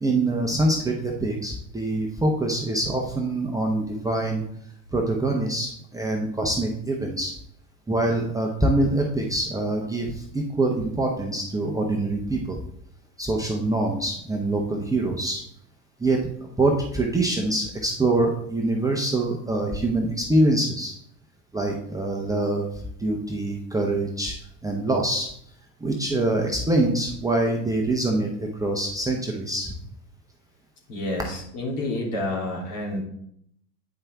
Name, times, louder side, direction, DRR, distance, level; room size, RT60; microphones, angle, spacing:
voice 1, 0.0-4.4 4.9-7.3 7.9-12.6 13.2-15.4 16.0-20.9 21.5-24.3 24.6-25.3 25.8-29.7, right 2 dB, 5° right, -1 dB, 1.0 m, -25 dB
voice 2, 30.9-33.0, left 1 dB, 50° left, -2 dB, 3.2 m, -29 dB
8.8 x 5.5 x 3.5 m, 0.69 s
hypercardioid pair, 90°, 48 cm